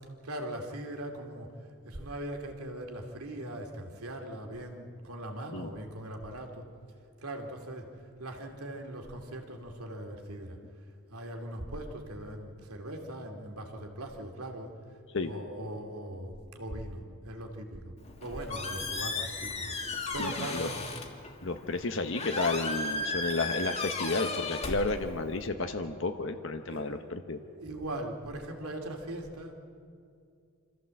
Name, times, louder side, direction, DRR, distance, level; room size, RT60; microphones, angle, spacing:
voice 1, 0.2-1.5 1.8-6.6 7.2-7.9 8.2-10.6 11.1-14.7 15.2-17.9 18.2-19.7 20.1-20.8 26.4-29.6, right 1 dB, 85° right, 3 dB, 2.6 m, -40 dB
Squeak, 18.0-25.5, left 3 dB, 30° left, 1.7 m, -36 dB
voice 2, 20.2-20.7 21.4-27.4, left 3 dB, 55° left, 6 dB, 0.9 m, -32 dB
26.0 x 14.5 x 7.7 m, 2.4 s
head